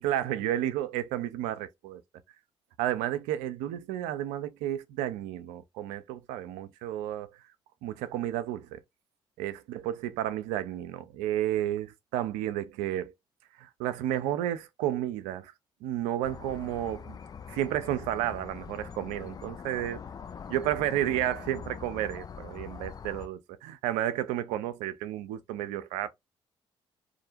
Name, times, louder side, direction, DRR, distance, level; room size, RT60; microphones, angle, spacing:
voice 1, 0.0-2.0 2.8-7.3 7.8-8.8 9.4-13.1 13.6-15.5 15.8-17.2 17.5-20.0 20.5-26.1, right 12 dB, 75° right, 0.4 m, -32 dB
sound 1, 16.2-23.3, left 6 dB, 30° left, 0.3 m, -43 dB
2.4 x 2.0 x 2.6 m
hypercardioid pair, 45°, 13 cm